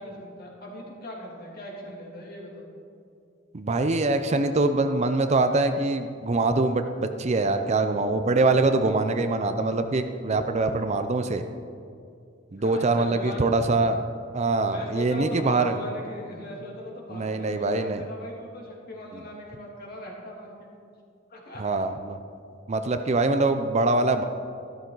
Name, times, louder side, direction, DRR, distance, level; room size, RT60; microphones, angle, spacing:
voice 1, 0.0-2.7 12.6-13.4 14.7-20.7 21.3-21.6, left 1 dB, 50° left, -2 dB, 2.7 m, -39 dB
voice 2, 3.5-11.4 12.5-14.0 14.3-15.8 17.1-18.0 21.6-22.2 22.7-24.2, right 3 dB, 35° right, 8 dB, 0.5 m, -24 dB
13.5 x 13.0 x 3.9 m, 2.4 s
head